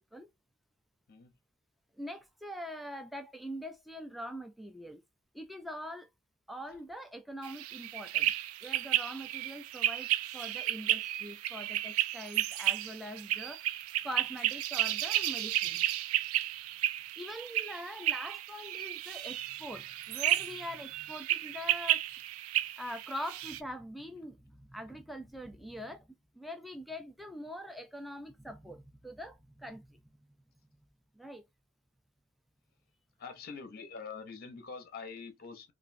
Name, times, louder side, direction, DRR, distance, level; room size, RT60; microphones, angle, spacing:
voice 1, 2.0-5.0 5.3-6.1 6.5-8.3 8.6-13.7 14.0-15.8 17.2-22.0 22.8-30.0 31.1-31.4, equal, ahead, 0.4 m, -43 dB
sound 1, 7.4-23.6, right 13 dB, 80° right, 0.3 m, -33 dB
voice 2, 33.2-35.7, left 5 dB, 45° left, 0.6 m, -45 dB
3.0 x 2.5 x 2.5 m
head